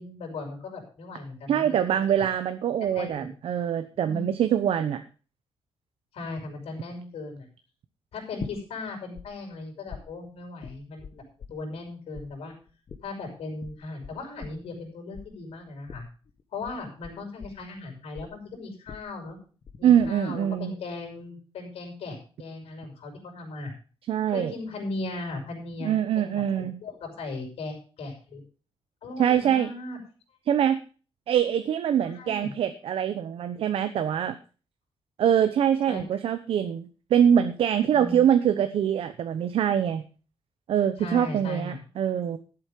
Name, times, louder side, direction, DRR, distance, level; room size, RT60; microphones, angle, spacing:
voice 1, 0.0-2.0 2.8-3.3 3.9-4.3 6.1-7.5 8.1-11.2 11.5-12.5 13.0-16.1 16.5-19.4 19.8-23.7 24.3-28.4 29.0-30.0 32.0-32.5 35.9-36.0 37.9-38.2 41.0-41.8, left 3 dB, 80° left, 2 dB, 5.4 m, -38 dB
voice 2, 1.5-5.0 19.8-20.7 24.1-24.5 25.8-26.8 29.2-29.7 30.5-30.8 31.3-34.3 35.2-40.0 40.7-42.4, right 9 dB, 70° right, 10 dB, 0.8 m, -24 dB
sound 1, 8.4-9.3 9.5-11.9 12.1-19.8 20.0-20.6, left 6 dB, 45° left, 1.4 m, -43 dB
13.0 x 7.9 x 5.2 m, 0.37 s
wide cardioid pair, 175°, 10 cm